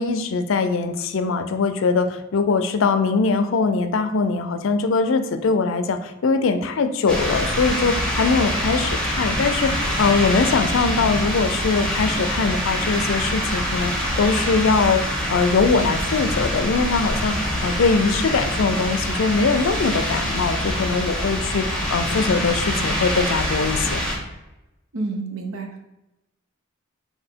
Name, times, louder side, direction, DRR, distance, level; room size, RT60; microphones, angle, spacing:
voice 1, 0.0-17.4 17.6-24.0, left 4 dB, 70° left, 9 dB, 0.4 m, -22 dB
sound 1, 7.1-24.2, equal, 5° left, 1.1 m, -25 dB
voice 2, 24.9-25.9, right 3 dB, 85° right, 4 dB, 0.7 m, -29 dB
4.1 x 2.7 x 4.4 m, 0.97 s
head